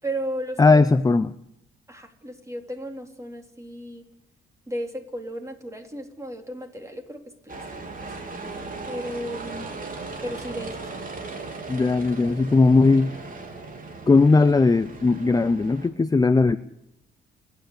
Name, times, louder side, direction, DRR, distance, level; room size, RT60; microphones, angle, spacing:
voice 1, 0.0-0.8 1.9-4.0 4.7-7.2 7.5-8.1 8.9-9.7 10.2-10.9, right 1 dB, 15° right, 3 dB, 3.9 m, -34 dB
voice 2, 0.6-1.3 11.7-13.2 14.1-16.6, left 3 dB, 20° left, 12 dB, 0.7 m, -18 dB
sound 1, 7.5-15.9, right 3 dB, 45° right, 3.5 m, -37 dB
30.0 x 10.5 x 8.4 m, 0.80 s
cardioid pair, 90°, 20 cm